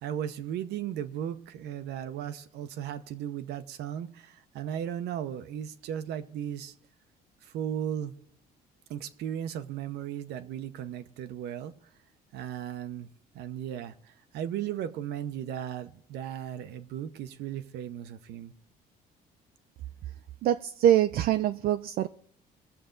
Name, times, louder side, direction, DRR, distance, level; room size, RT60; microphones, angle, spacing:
voice 1, 0.0-6.7 7.4-8.1 8.9-11.7 12.3-13.1 13.3-18.5, right 10 dB, 80° right, 0.8 m, -36 dB
voice 2, 20.4-22.1, right 11 dB, 60° right, 0.4 m, -24 dB
20.0 x 6.8 x 3.8 m
cardioid pair, 110°, 17 cm